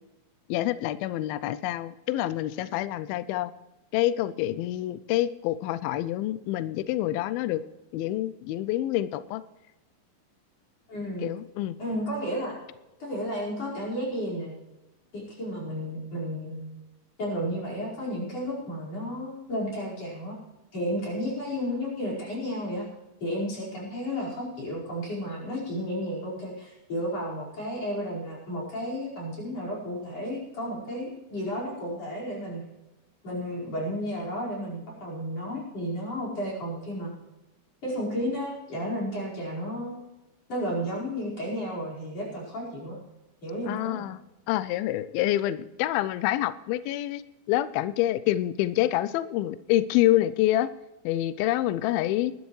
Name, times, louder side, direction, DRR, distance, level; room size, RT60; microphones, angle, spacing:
voice 1, 0.5-3.5 3.9-7.6 7.9-9.4 11.2-11.8 43.6-44.2 44.5-47.2 47.5-50.7 51.0-52.3, left 14 dB, 90° left, 15 dB, 2.1 m, -27 dB
voice 2, 10.9-11.3 11.8-12.5 13.0-14.5 15.1-16.6 17.2-20.4 20.7-22.9 23.2-32.6 33.2-37.1 37.8-40.0 40.5-43.0 43.4-44.0, equal, 35° left, -4 dB, 5.7 m, -32 dB
20.0 x 12.5 x 3.2 m, 0.99 s
omnidirectional pair, 4.9 m